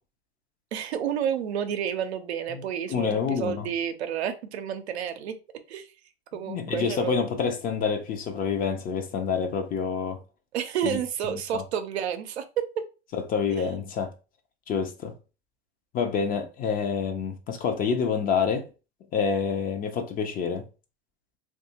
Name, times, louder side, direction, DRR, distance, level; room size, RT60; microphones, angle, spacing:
voice 1, 0.7-5.3 5.7-5.9 6.3-7.2 10.5-12.6 13.6-13.7, right 9 dB, 90° right, 0.6 m, -30 dB
voice 2, 2.9-3.7 6.5-10.2 10.8-11.0 11.5-11.6 13.1-14.1 14.7-15.1 15.9-18.6 19.1-20.6, left 6 dB, 30° left, 0.5 m, -27 dB
2.7 x 2.4 x 2.7 m
hypercardioid pair, 115°, 32 cm